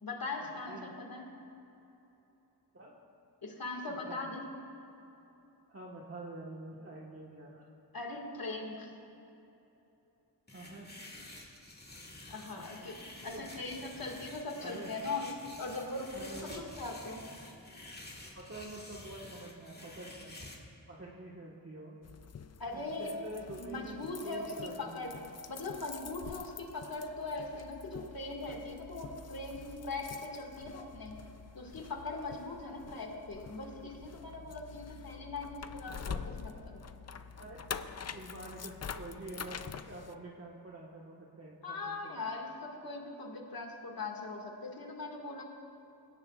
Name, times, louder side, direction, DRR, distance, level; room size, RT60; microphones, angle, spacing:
voice 1, 0.0-1.3 3.4-4.5 7.9-8.9 12.3-13.0 13.2-15.3 15.6-17.2 22.6-23.1 23.6-25.1 25.5-31.2 31.6-36.8 41.6-45.4, left 3 dB, 60° left, 0 dB, 2.0 m, -40 dB
voice 2, 3.9-4.3 5.7-7.6 10.5-10.9 12.5-12.9 13.2-13.5 14.6-14.9 16.1-16.6 18.3-20.4 20.9-22.0 22.7-24.0 24.2-25.2 34.3-34.5 35.9-36.2 37.4-42.1, right 2 dB, 35° right, -4 dB, 1.4 m, -47 dB
sound 1, 10.5-20.6, left 1 dB, 25° left, 1.8 m, -50 dB
sound 2, 22.0-40.1, left 6 dB, 40° left, 0.5 m, -46 dB
20.5 x 17.0 x 2.4 m, 3.0 s
wide cardioid pair, 90°, 40 cm